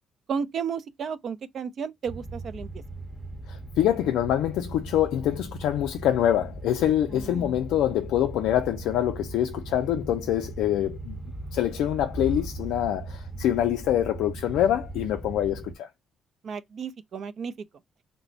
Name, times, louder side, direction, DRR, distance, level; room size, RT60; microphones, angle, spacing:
voice 1, 0.3-2.7 7.1-7.5 16.4-17.5, right 6 dB, 60° right, 0.4 m, -33 dB
sound 1, 2.1-15.7, right 2 dB, 5° right, 0.7 m, -38 dB
voice 2, 3.5-11.2 11.5-15.9, left 11 dB, 90° left, 0.3 m, -25 dB
3.3 x 2.0 x 3.7 m
cardioid pair, 90°, 0 cm